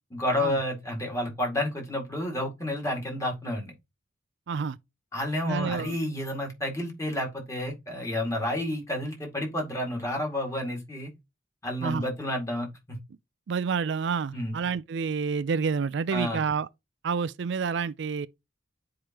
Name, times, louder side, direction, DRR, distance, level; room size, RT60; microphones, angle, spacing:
voice 1, 0.1-3.7 5.1-11.1 11.6-12.7 14.3-14.6 16.1-16.4, left 1 dB, 15° left, 2.2 m, -30 dB
voice 2, 4.5-4.8 5.5-6.0 11.8-12.0 13.5-16.7 17.0-18.3, right 5 dB, 60° right, 0.4 m, -28 dB
10.0 x 4.8 x 3.0 m
head